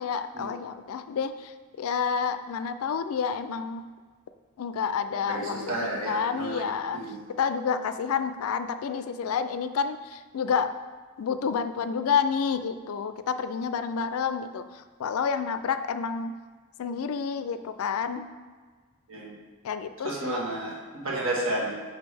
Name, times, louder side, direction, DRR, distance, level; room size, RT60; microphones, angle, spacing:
voice 1, 0.0-1.5 1.8-3.9 4.6-7.0 7.4-10.7 11.2-14.6 15.0-16.3 16.8-18.2 19.6-20.5, left 6 dB, 75° left, 11 dB, 0.3 m, -29 dB
voice 2, 5.3-6.6 6.9-7.2 19.1-19.4 20.0-21.7, right 2 dB, 65° right, -3 dB, 1.5 m, -31 dB
6.1 x 5.2 x 3.3 m, 1.5 s
head